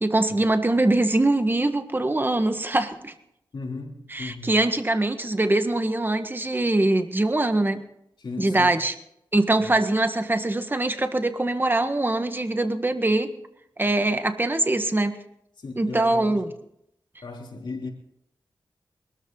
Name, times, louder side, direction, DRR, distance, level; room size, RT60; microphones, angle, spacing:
voice 1, 0.0-3.1 4.1-7.8 8.4-8.9 9.3-13.4 13.8-15.2 15.8-16.5, right 2 dB, 25° right, 1.6 m, -23 dB
voice 2, 3.5-4.6 8.2-8.8 9.6-9.7 15.6-16.4 17.2-17.9, left 3 dB, 70° left, 3.4 m, -36 dB
21.5 x 13.5 x 4.0 m
wide cardioid pair, 65°, 8 cm